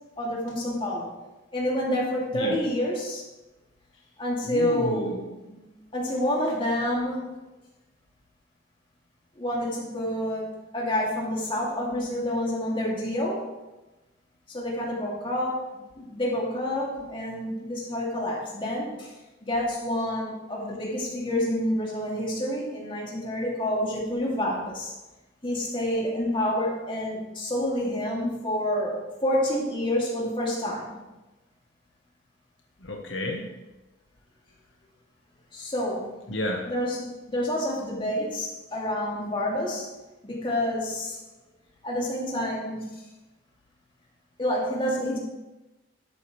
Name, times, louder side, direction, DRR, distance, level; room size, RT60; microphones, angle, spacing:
voice 1, 0.2-1.1 1.5-3.2 4.2-5.6 5.9-7.2 9.4-13.5 14.5-15.6 16.0-19.1 19.4-24.9 25.4-31.0 35.5-36.1 36.7-39.9 40.2-41.2 41.8-43.0 44.4-45.2, left 1 dB, 25° left, -4 dB, 2.7 m, -28 dB
voice 2, 4.4-5.2 32.8-33.5 36.3-36.7, left 1 dB, 75° left, 1 dB, 1.3 m, -31 dB
12.0 x 8.4 x 3.3 m, 1.0 s
head